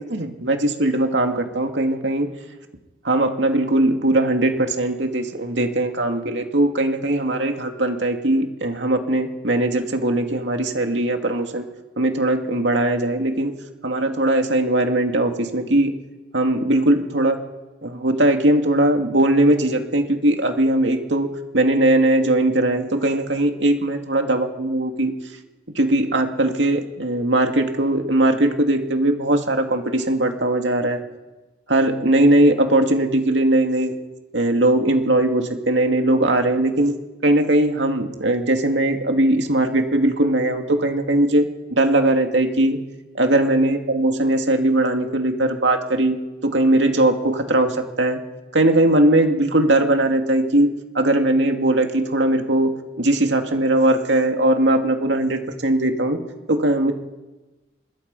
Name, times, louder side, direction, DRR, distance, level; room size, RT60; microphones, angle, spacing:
voice 1, 0.1-2.3 3.0-11.7 12.0-13.5 13.8-15.9 16.3-17.4 17.8-21.3 21.5-25.1 25.8-31.0 31.7-33.9 34.3-36.9 37.2-42.8 43.1-46.2 46.4-48.2 48.5-56.2 56.5-56.9, right 1 dB, 90° right, 4 dB, 2.5 m, -19 dB
25.5 x 22.0 x 5.6 m, 1.1 s
head